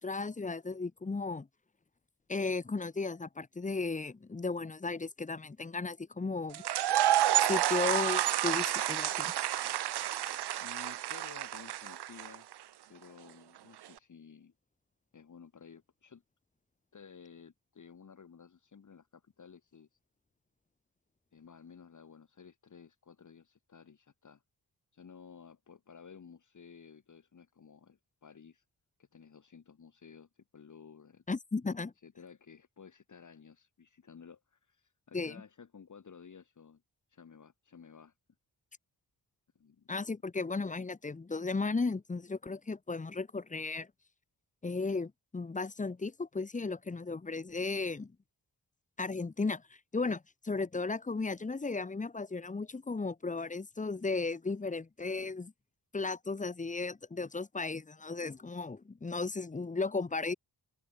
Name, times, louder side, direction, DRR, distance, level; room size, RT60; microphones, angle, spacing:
voice 1, 0.0-1.5 2.3-6.6 7.5-9.3 31.3-31.9 35.1-35.4 39.9-43.9 44.6-48.1 49.0-49.6 49.9-55.5 55.9-60.3, left 3 dB, 20° left, 0.8 m, -35 dB
sound 1, 6.5-12.5, right 12 dB, 85° right, 0.6 m, -30 dB
voice 2, 10.3-12.5 12.9-14.5 15.1-16.2 16.9-20.0 21.3-24.4 24.9-28.6 29.0-31.2 32.0-36.8 37.1-38.1 39.5-39.9, left 6 dB, 50° left, 2.5 m, -54 dB
wide cardioid pair, 145°, 39 cm